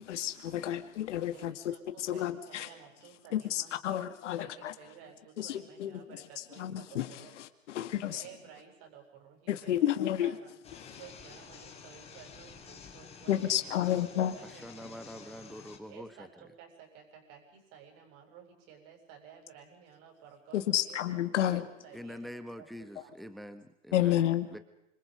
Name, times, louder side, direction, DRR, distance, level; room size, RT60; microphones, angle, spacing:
voice 1, 0.0-1.6 2.0-2.7 3.3-4.7 5.4-6.0 6.4-8.2 9.5-10.4 10.8-11.0 13.3-14.4 20.5-21.7 23.9-24.5, left 12 dB, 65° left, 2.1 m, -31 dB
voice 2, 1.3-4.1 4.4-7.4 8.1-9.9 10.2-10.5 10.8-15.2 15.9-21.2 21.5-23.1 24.5-24.6, right 8 dB, 40° right, 7.7 m, -54 dB
sound 1, 10.6-15.8, left 6 dB, 15° left, 3.8 m, -51 dB
voice 3, 14.6-16.3 21.9-24.2 24.5-24.6, equal, ahead, 1.4 m, -45 dB
27.0 x 26.0 x 5.2 m
hypercardioid pair, 135°, 38 cm